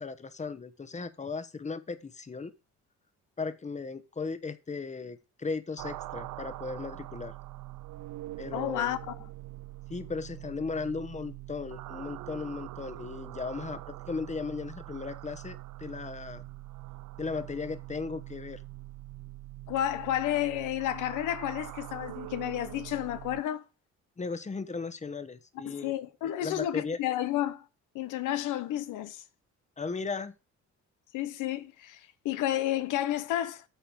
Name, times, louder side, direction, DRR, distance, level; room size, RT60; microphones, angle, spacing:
voice 1, 0.0-2.5 3.4-7.3 8.4-9.0 9.9-16.4 17.2-18.6 24.2-25.9 26.4-27.0 29.8-30.3, left 4 dB, 25° left, 1.1 m, -36 dB
sound 1, 5.8-23.4, right 17 dB, 85° right, 0.5 m, -43 dB
voice 2, 8.5-9.1 19.7-23.6 25.6-27.6 27.9-29.2 31.1-33.6, left 12 dB, 90° left, 0.8 m, -31 dB
9.1 x 4.4 x 7.1 m
cardioid pair, 90°, 30 cm